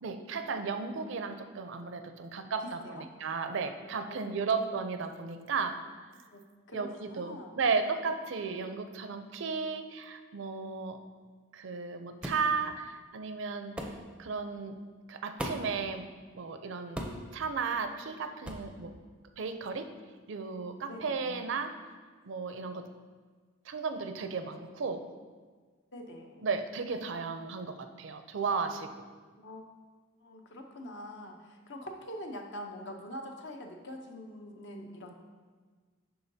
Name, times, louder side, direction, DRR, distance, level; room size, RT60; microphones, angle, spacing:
voice 1, 0.0-5.8 6.7-11.0 11.5-13.8 14.2-14.8 15.1-16.1 16.3-17.0 17.3-18.9 19.4-19.9 20.3-21.7 22.2-22.9 23.7-25.0 26.4-28.9, right 5 dB, 60° right, 7 dB, 0.4 m, -34 dB
voice 2, 2.6-3.1 4.1-4.8 6.3-6.4 6.7-7.5 20.9-21.4 25.9-26.5 29.4-29.7 30.2-35.1, equal, 60° left, 3 dB, 0.7 m, -44 dB
sound 1, 12.2-12.5 13.8-14.0 15.4-15.8 17.0-17.3 18.4-18.7, equal, 5° right, 0.5 m, -37 dB
10.5 x 3.8 x 2.7 m, 1.5 s
head